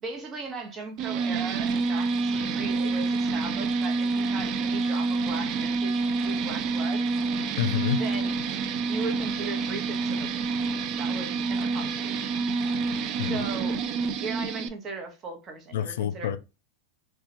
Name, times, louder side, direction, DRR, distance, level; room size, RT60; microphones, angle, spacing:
voice 1, 0.0-7.0 8.0-8.3 8.9-10.6 11.0-12.3 13.2-13.8 14.2-16.3, right 3 dB, 30° right, 0.8 m, -38 dB
sound 1, 1.0-14.7, right 4 dB, 45° right, 0.3 m, -28 dB
voice 2, 7.6-8.0 13.2-13.4 15.7-16.4, left 9 dB, 80° left, 0.3 m, -27 dB
2.8 x 2.2 x 2.6 m
hypercardioid pair, 115°, 0 cm